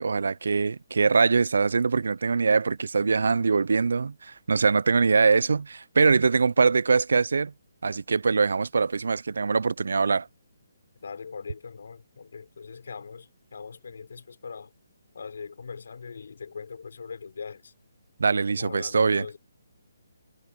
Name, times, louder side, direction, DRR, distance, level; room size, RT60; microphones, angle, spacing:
voice 1, 0.0-7.5 7.8-10.3 18.2-19.3, right 4 dB, 70° right, 0.7 m, -23 dB
voice 2, 11.0-14.7 15.1-17.7 18.5-19.4, left 5 dB, 65° left, 6.3 m, -41 dB
figure-of-eight pair, 145°, 0 cm